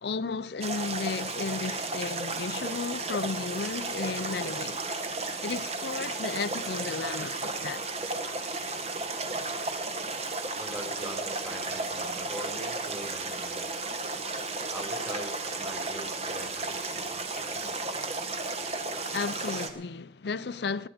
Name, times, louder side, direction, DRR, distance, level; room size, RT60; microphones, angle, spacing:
voice 1, 0.0-5.0 5.4-7.8 17.4-17.5 17.8-17.9 19.1-20.9, left 4 dB, 60° left, 0.5 m, -34 dB
sound 1, 0.6-19.7, right 3 dB, 35° right, 1.3 m, -34 dB
voice 2, 10.6-13.7 14.7-17.9, right 1 dB, 20° right, 3.6 m, -42 dB
19.5 x 10.0 x 5.0 m
head